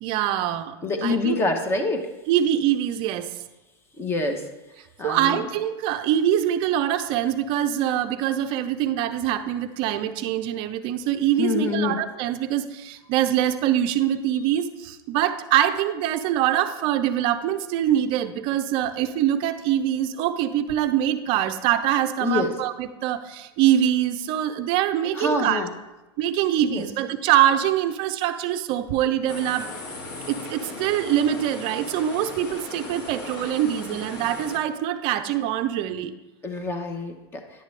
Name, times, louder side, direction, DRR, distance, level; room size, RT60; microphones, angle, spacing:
voice 1, 0.0-0.8 1.0-1.4 2.3-3.3 5.0-25.6 26.2-29.7 30.3-36.1, right 11 dB, 40° right, 10 dB, 0.5 m, -24 dB
voice 2, 0.8-2.1 4.0-4.4 5.0-5.5 11.4-12.0 22.2-22.5 25.1-25.7 26.6-26.9 36.4-37.4, left 3 dB, 15° left, 5 dB, 0.9 m, -26 dB
sound 1, 29.3-34.6, left 2 dB, 50° left, 1.5 m, -37 dB
10.5 x 6.6 x 3.2 m, 1.0 s
supercardioid pair, 140°, 14 cm